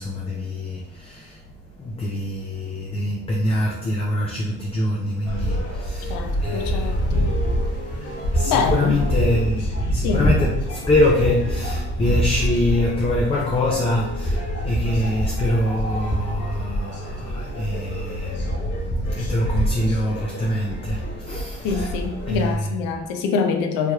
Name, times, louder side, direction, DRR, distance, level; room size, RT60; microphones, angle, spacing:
voice 1, 0.0-1.4 1.8-7.0 7.9-21.9 22.3-22.7, left 1 dB, 20° left, 0.4 m, -25 dB
sound 1, 5.2-22.6, equal, 45° left, 1.0 m, -26 dB
voice 2, 6.1-7.2 8.5-9.0 10.0-10.2 21.6-23.9, left 5 dB, 80° left, 0.6 m, -25 dB
3.3 x 3.0 x 2.3 m
supercardioid pair, 95°, 33 cm